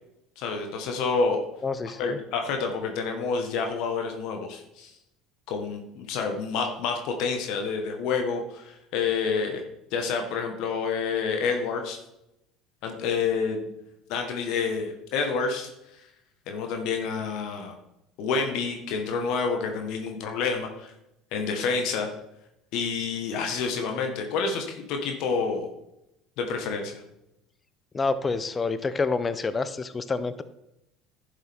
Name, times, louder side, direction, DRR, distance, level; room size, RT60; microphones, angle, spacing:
voice 1, 0.4-1.4 2.0-4.9 5.5-9.6 9.9-12.0 12.8-13.7 14.1-15.7 16.5-17.7 18.2-20.9 21.3-22.1 22.7-25.7 26.4-27.0, left 5 dB, 65° left, 4 dB, 1.4 m, -28 dB
voice 2, 1.6-2.2 27.9-30.4, left 4 dB, 25° left, 13 dB, 0.7 m, -28 dB
11.0 x 7.2 x 3.6 m, 0.85 s
hypercardioid pair, 70°, 0 cm